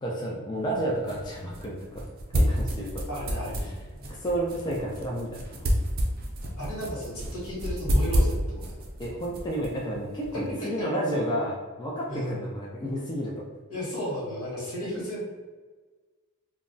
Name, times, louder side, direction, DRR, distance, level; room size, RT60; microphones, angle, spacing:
voice 1, 0.0-2.0 2.3-3.0 4.1-5.6 9.0-13.4, right 1 dB, 20° left, -3 dB, 0.3 m, -31 dB
sound 1, 0.6-10.5, equal, 45° right, 0.4 m, -30 dB
voice 2, 3.1-3.8 6.6-8.8 10.3-10.9 12.1-12.4 13.7-15.2, equal, 80° left, -6 dB, 1.2 m, -34 dB
2.2 x 2.0 x 3.8 m, 1.3 s
head